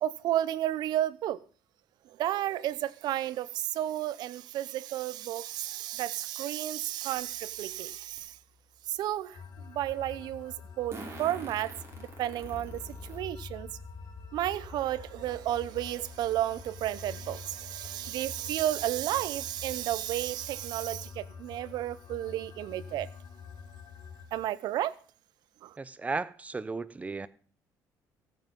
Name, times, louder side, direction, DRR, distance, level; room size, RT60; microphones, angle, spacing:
voice 1, 0.0-1.4 2.2-8.3 8.9-9.4 9.7-11.7 12.0-12.8 13.1-13.7 14.3-23.1 24.3-24.9 25.6-25.7, right 13 dB, 70° right, 0.8 m, -32 dB
sound 1, 7.1-10.4 12.4-21.9, left 2 dB, 25° left, 3.4 m, -53 dB
Fart, 8.2-8.3 10.9-13.2 13.8-13.9 15.2-15.3 15.7-15.8 16.2-16.5, right 3 dB, 35° right, 5.8 m, -45 dB
sound 2, 9.3-24.3, left 6 dB, 50° left, 4.3 m, -47 dB
voice 2, 25.8-27.3, right 3 dB, 20° right, 0.8 m, -35 dB
16.0 x 9.4 x 5.3 m
cardioid pair, 105°, 7 cm